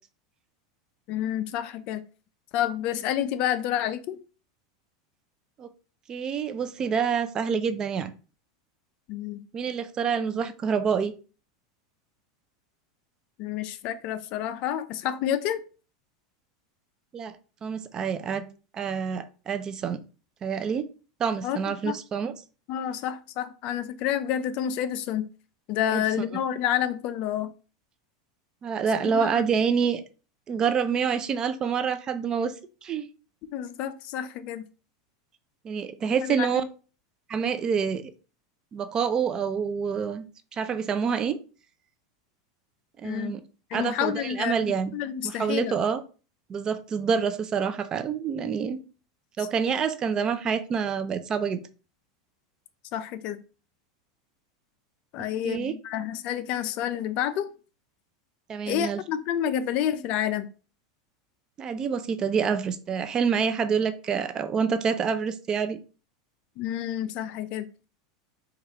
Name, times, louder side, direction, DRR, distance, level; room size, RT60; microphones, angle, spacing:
voice 1, 1.1-2.0 2.5-4.2 9.1-9.4 13.4-15.6 21.4-21.6 21.8-22.0 22.7-25.2 25.7-27.5 29.0-29.5 33.5-34.7 36.2-36.6 43.0-43.3 43.7-45.8 52.9-53.4 55.1-57.5 58.7-60.5 66.6-67.7, left 10 dB, 50° left, 0.4 m, -29 dB
voice 2, 6.1-8.1 9.5-11.1 17.1-17.3 17.6-18.4 18.7-20.0 20.4-20.8 21.2-22.3 25.9-26.0 28.6-30.0 30.5-32.5 32.8-33.1 35.6-36.6 37.3-38.1 38.7-40.2 40.5-41.4 43.0-43.4 43.7-44.9 45.2-46.0 46.5-48.8 49.4-51.6 55.4-55.7 58.5-59.0 61.6-65.8, right 6 dB, 30° right, 0.4 m, -27 dB
4.5 x 2.4 x 2.8 m
supercardioid pair, 115°, 2 cm